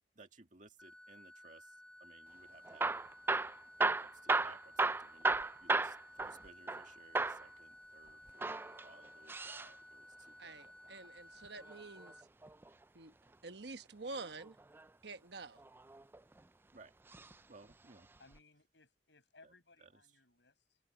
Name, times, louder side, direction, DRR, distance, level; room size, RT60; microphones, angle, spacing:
voice 1, 0.2-2.9 3.7-11.0 16.7-16.9 17.5-18.1 19.4-19.5 19.8-19.9, right 3 dB, 45° right, 2.1 m, -60 dB
sound 1, 0.8-12.2, left 1 dB, 5° left, 0.9 m, -57 dB
Hammer / Drill, 2.6-6.9 7.1-7.5 8.3-9.7 11.5-12.7 14.4-14.9 15.6-16.4 17.1-17.3 17.6-17.7 18.4-18.5, right 3 dB, 10° right, 0.3 m, -35 dB
voice 2, 10.4-12.3 12.9-13.1 13.4-14.6 15.0-15.6, right 3 dB, 70° right, 1.2 m, -48 dB
voice 3, 18.2-20.8, left 3 dB, 80° left, 6.9 m, -64 dB
head